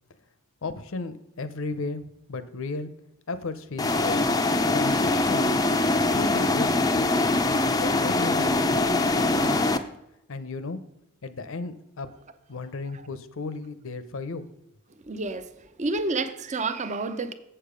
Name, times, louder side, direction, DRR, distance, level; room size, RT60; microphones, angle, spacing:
voice 1, 0.6-2.0 2.3-2.9 3.3-4.2 4.7-5.6 6.1-6.7 7.0-7.3 7.6-9.7 10.3-10.8 11.2-12.1 12.5-14.5, left 3 dB, 65° left, 0.7 m, -34 dB
sound 1, 3.8-9.8, left 2 dB, 15° left, 0.4 m, -23 dB
voice 2, 15.0-17.3, right 3 dB, 35° right, 0.6 m, -29 dB
7.4 x 6.8 x 5.0 m
head